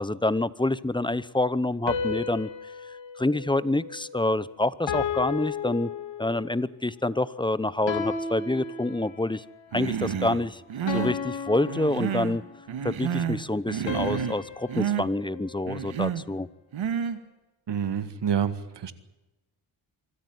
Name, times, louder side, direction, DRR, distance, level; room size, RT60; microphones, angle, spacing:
voice 1, 0.0-2.5 2.8-5.9 6.2-9.4 9.7-10.6 10.9-12.4 12.8-16.5, left 2 dB, 10° left, 17 dB, 0.8 m, -27 dB
sound 1, 1.9-4.4 4.9-6.6 7.9-9.4 10.9-12.7 13.9-16.2, left 6 dB, 70° left, 3.1 m, -34 dB
Human voice, 9.7-10.4 10.7-11.2 11.7-12.4 12.7-13.4 13.7-14.4 14.7-15.1 15.7-16.2 16.7-17.2, right 8 dB, 80° right, 1.9 m, -29 dB
voice 2, 17.7-18.9, right 8 dB, 60° right, 12 dB, 1.9 m, -28 dB
25.5 x 13.5 x 9.5 m, 1.0 s
cardioid pair, 85°, 47 cm